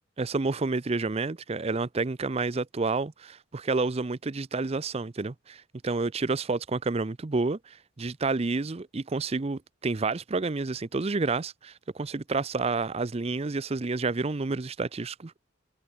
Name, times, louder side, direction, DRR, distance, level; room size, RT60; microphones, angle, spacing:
voice 1, 0.2-15.4, right 3 dB, 30° right, 0.5 m, -29 dB
head